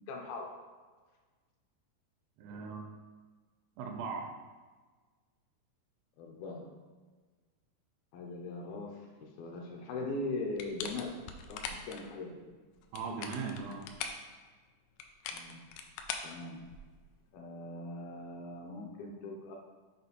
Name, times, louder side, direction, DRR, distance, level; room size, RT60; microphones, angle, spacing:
voice 1, 0.1-0.5 6.2-6.7 8.1-11.2 11.5-12.4 15.3-15.6 16.2-16.6 17.3-19.6, left 2 dB, 75° left, 1 dB, 2.4 m, -40 dB
voice 2, 2.4-3.0 3.8-4.3 12.9-13.9, right 5 dB, 80° right, 3 dB, 2.6 m, -39 dB
sound 1, 10.6-12.0 12.8-14.3 15.0-17.0, left 6 dB, 90° left, 2.8 m, -41 dB
7.4 x 5.0 x 4.1 m, 1.4 s
omnidirectional pair, 4.9 m